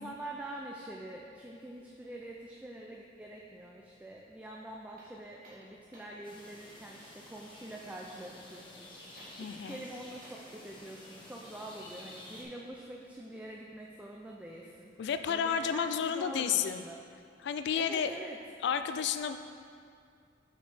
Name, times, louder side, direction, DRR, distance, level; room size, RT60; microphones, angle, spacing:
voice 1, 0.0-17.0 17.7-18.4, right 1 dB, 10° right, -2 dB, 0.4 m, -45 dB
sound 1, 5.0-6.3 9.1-10.5, right 1 dB, 55° right, 1.8 m, -56 dB
sound 2, 6.2-12.4, left 1 dB, 30° left, 1.2 m, -51 dB
voice 2, 9.4-9.8 15.0-16.8 17.4-18.2 18.6-19.4, left 7 dB, 65° left, 9 dB, 0.3 m, -31 dB
8.2 x 4.5 x 4.3 m, 2.3 s
head